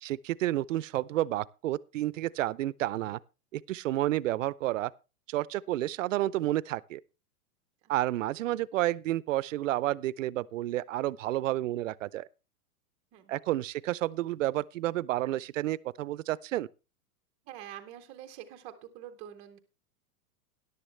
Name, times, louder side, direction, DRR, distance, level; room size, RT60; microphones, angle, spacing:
voice 1, 0.0-3.2 3.5-4.9 5.3-7.0 7.9-12.3 13.3-16.7, right 15 dB, 55° right, 0.6 m, -30 dB
voice 2, 17.5-19.6, right 11 dB, 15° right, 0.6 m, -46 dB
13.5 x 11.0 x 3.2 m
supercardioid pair, 170°, 46 cm